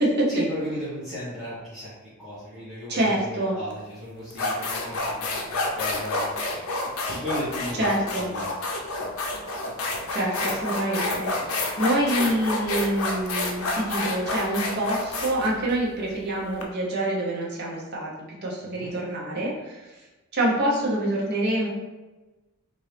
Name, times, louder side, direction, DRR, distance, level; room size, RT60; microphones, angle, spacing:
voice 1, 0.3-6.3 7.1-7.9 8.1-8.5 9.0-9.1 18.7-18.9, left 1 dB, ahead, -14 dB, 0.9 m, -35 dB
voice 2, 2.9-3.5 7.8-8.3 10.1-18.1 18.4-19.9 20.3-21.7, right 1 dB, 50° right, -4 dB, 0.8 m, -26 dB
sound 1, 3.7-3.9 4.3-16.6, left 2 dB, 70° left, 0.5 m, -29 dB
2.8 x 2.6 x 3.3 m, 1.1 s
head